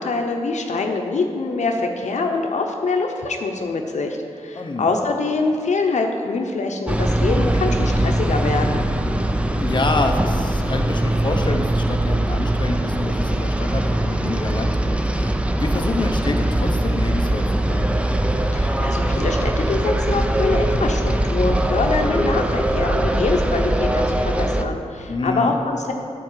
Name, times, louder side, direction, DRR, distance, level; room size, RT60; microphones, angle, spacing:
voice 1, 0.0-8.9 18.5-25.9, left 3 dB, 80° left, 2 dB, 0.8 m, -24 dB
voice 2, 4.6-4.9 9.6-18.0 25.1-25.6, left 2 dB, 40° left, 4 dB, 0.9 m, -27 dB
sound 1, 6.9-24.6, right 1 dB, 10° right, 0.5 m, -21 dB
12.5 x 4.7 x 7.6 m, 2.4 s
wide cardioid pair, 135°, 12 cm